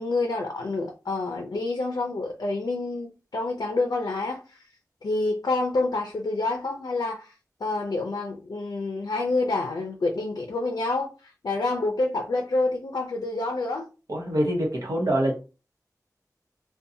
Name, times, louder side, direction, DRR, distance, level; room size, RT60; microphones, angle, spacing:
voice 1, 0.0-4.6 5.0-7.3 7.6-13.9, left 2 dB, 85° left, 0.4 m, -28 dB
voice 2, 14.1-15.3, right 1 dB, 65° right, 0.9 m, -24 dB
2.5 x 2.2 x 2.7 m
wide cardioid pair, 75°, 7 cm